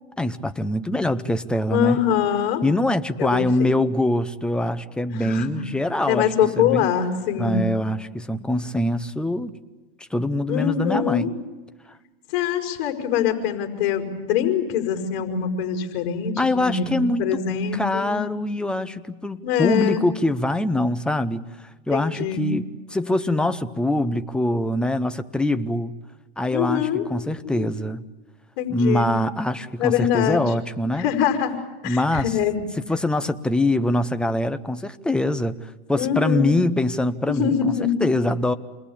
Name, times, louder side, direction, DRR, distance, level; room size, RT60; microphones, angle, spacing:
voice 1, 0.2-2.0 2.6-6.9 7.4-9.5 10.0-11.3 16.4-17.3 17.7-26.0 26.4-28.0 28.7-31.1 31.8-32.3 32.9-37.7 38.0-38.5, left 1 dB, 5° left, 9 dB, 0.8 m, -24 dB
voice 2, 1.7-2.6 3.2-3.7 5.1-5.6 5.9-7.7 10.5-11.3 12.3-18.2 19.4-20.0 21.9-22.5 26.5-27.0 27.4-27.7 28.6-29.1 29.8-30.4 30.9-31.6 31.8-32.6 36.0-36.6 37.3-38.0, left 8 dB, 50° left, 5 dB, 5.2 m, -23 dB
28.5 x 21.0 x 8.7 m, 1.2 s
hypercardioid pair, 140°, 31 cm